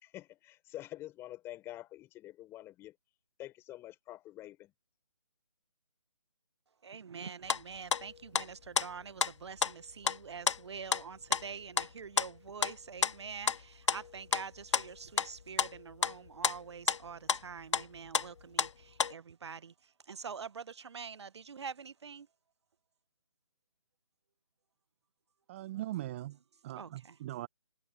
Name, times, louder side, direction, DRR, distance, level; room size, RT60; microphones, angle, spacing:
voice 1, 0.0-2.9 3.4-4.7, left 15 dB, 15° left, 4.2 m, -47 dB
voice 2, 6.8-22.3 26.8-27.2, right 6 dB, 55° right, 1.0 m, -46 dB
sound 1, 7.5-7.6 7.9-8.5 8.8-8.9 9.2-9.3 9.6-9.7 10.0-10.2 10.5-10.6 10.9-11.0 11.3-11.9 12.2-12.3 12.6-12.7 13.0-13.1 13.5-13.6 13.9-16.6 16.9-17.0 17.3-17.4 17.7-17.9 18.1-18.7 19.0-19.1, left 6 dB, 60° left, 0.6 m, -30 dB
voice 3, 25.5-26.4 26.6-27.5, right 15 dB, 20° right, 0.7 m, -40 dB
figure-of-eight pair, 145°, 17 cm